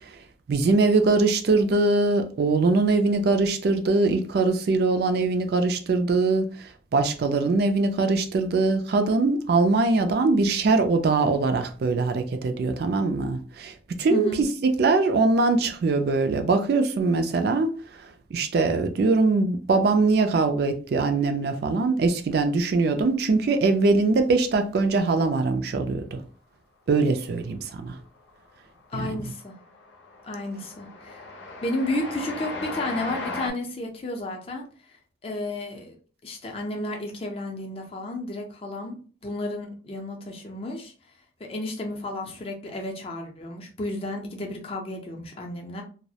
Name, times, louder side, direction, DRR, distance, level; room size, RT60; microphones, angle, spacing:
voice 1, 0.5-14.3 14.6-18.0 18.3-26.2 26.9-27.9 28.9-29.1, right 3 dB, 55° right, 0.3 m, -22 dB
voice 2, 14.1-14.4 28.9-29.5 30.2-31.2 31.6-34.7 35.2-36.0 36.2-40.9 41.4-45.8, left 1 dB, 30° left, 0.5 m, -32 dB
Train, 27.8-28.3 28.6-33.5, left 3 dB, 75° left, 0.6 m, -36 dB
2.3 x 2.0 x 2.7 m
head